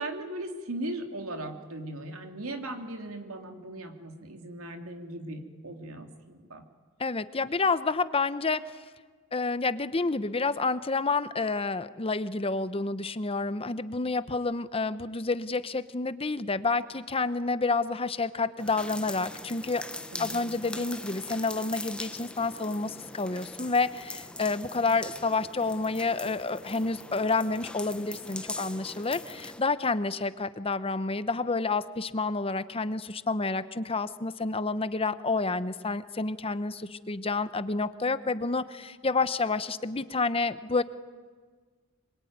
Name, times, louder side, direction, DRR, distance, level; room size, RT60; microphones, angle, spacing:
voice 1, 0.0-6.6 20.1-20.4, right 1 dB, 90° right, 5 dB, 2.9 m, -38 dB
voice 2, 7.0-8.6 9.3-19.8 20.2-40.8, left 3 dB, 25° left, 13 dB, 0.9 m, -29 dB
sound 1, 18.6-29.6, left 2 dB, 5° left, 1.0 m, -41 dB
25.5 x 22.5 x 9.5 m, 1.5 s
head